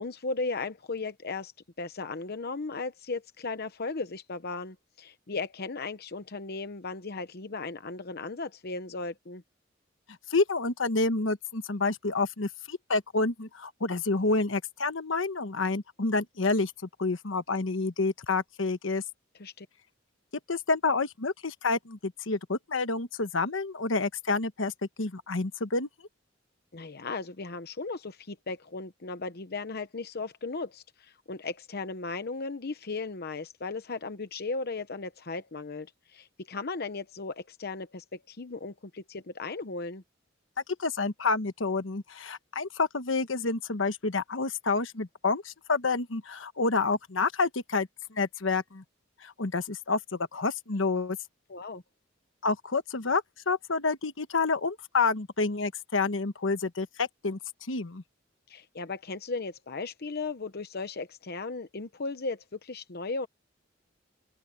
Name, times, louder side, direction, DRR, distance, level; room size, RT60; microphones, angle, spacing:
voice 1, 0.0-1.5 1.8-9.4 19.4-19.7 26.7-40.0 51.5-51.8 58.5-63.3, left 3 dB, 55° left, 0.9 m, -36 dB
voice 2, 10.3-16.7 17.0-19.0 20.5-24.7 25.0-25.9 40.8-48.8 49.2-51.2 52.4-57.4 57.7-58.0, left 3 dB, 75° left, 1.2 m, -29 dB
open air
head